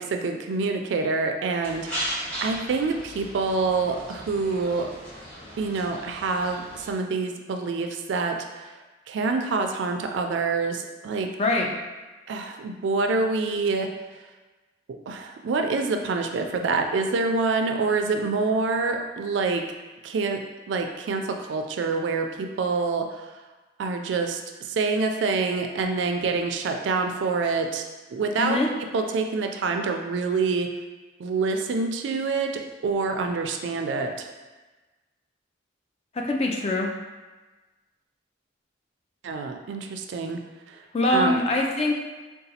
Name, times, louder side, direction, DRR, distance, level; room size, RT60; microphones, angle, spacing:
voice 1, 0.0-4.9 5.6-8.8 9.1-11.3 12.3-13.9 15.1-19.6 20.0-20.4 20.7-23.3 23.8-27.8 28.1-28.6 28.9-30.7 31.2-34.3 39.2-40.4 40.7-40.8 41.1-41.4, right 4 dB, 70° right, 4 dB, 0.3 m, -26 dB
sound 1, 1.6-6.9, equal, 5° left, 1.0 m, -37 dB
voice 2, 11.4-11.7 28.4-28.7 36.1-36.9 40.9-41.9, left 1 dB, 30° left, 0 dB, 0.3 m, -23 dB
3.9 x 2.3 x 2.7 m, 1.2 s
head